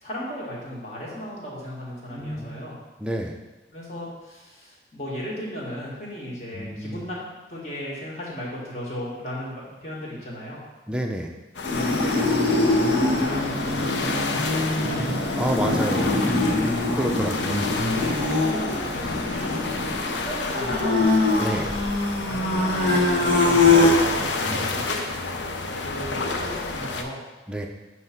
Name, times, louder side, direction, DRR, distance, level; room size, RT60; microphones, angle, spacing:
voice 1, 0.0-2.8 3.7-10.6 11.7-15.1 16.4-16.9 17.9-19.8 20.2-21.2 22.3-25.0 25.8-27.2, equal, 40° left, -5 dB, 1.8 m, -36 dB
voice 2, 2.1-2.5 3.0-3.4 6.5-7.0 10.9-11.4 15.0-16.2 16.9-17.6 21.4-21.7 24.4-24.7 27.5-27.7, right 1 dB, 5° right, 1 dB, 0.5 m, -29 dB
sound 1, 11.5-27.0, left 3 dB, 90° left, 0.6 m, -30 dB
sound 2, 11.6-23.9, left 3 dB, 70° left, 1.5 m, -23 dB
7.4 x 3.2 x 5.8 m, 1.2 s
head